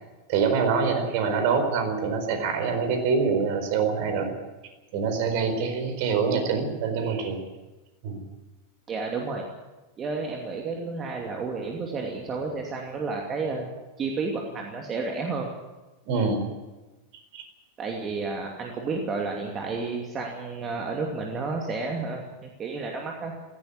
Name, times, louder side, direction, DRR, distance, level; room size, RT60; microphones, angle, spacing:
voice 1, 0.3-4.3 4.9-7.4 8.0-8.2 16.1-16.5 17.3-17.4, right 5 dB, 45° right, 6 dB, 4.4 m, -25 dB
voice 2, 8.9-9.4 10.0-13.7 14.0-15.5 17.8-23.6, right 4 dB, 25° right, 1 dB, 2.6 m, -31 dB
16.5 x 16.5 x 9.8 m, 1.1 s
figure-of-eight pair, 90°, 0 cm